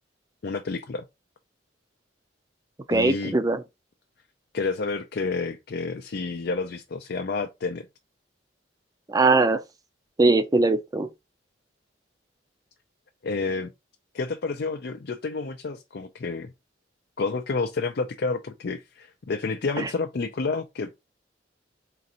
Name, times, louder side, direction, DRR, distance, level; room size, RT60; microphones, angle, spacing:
voice 1, 0.4-1.0 2.9-3.4 4.5-7.9 13.2-13.7 14.1-16.5 17.2-20.9, left 4 dB, 60° left, 0.5 m, -29 dB
voice 2, 2.9-3.6 9.1-9.6 10.2-11.1 19.8-19.9, right 3 dB, 20° right, 0.5 m, -21 dB
3.9 x 2.5 x 4.2 m
head